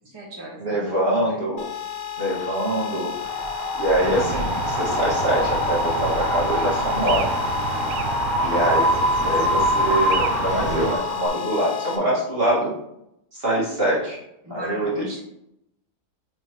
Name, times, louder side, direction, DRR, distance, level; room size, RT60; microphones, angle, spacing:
voice 1, 0.0-1.5 4.0-4.5 8.4-8.7 14.4-15.2, left 1 dB, 15° right, -5 dB, 1.5 m, -37 dB
voice 2, 0.6-1.7 2.2-3.1 3.7-7.4 8.4-12.7 13.3-14.2 14.5-14.9, right 1 dB, 40° right, -6 dB, 2.0 m, -24 dB
sound 1, 1.6-12.0, left 10 dB, 50° left, 1.2 m, -32 dB
Wind, 3.2-11.3, left 1 dB, ahead, 1.0 m, -25 dB
sound 2, 4.0-11.0, right 7 dB, 70° right, 1.0 m, -31 dB
8.7 x 4.3 x 3.0 m, 0.80 s
omnidirectional pair, 1.7 m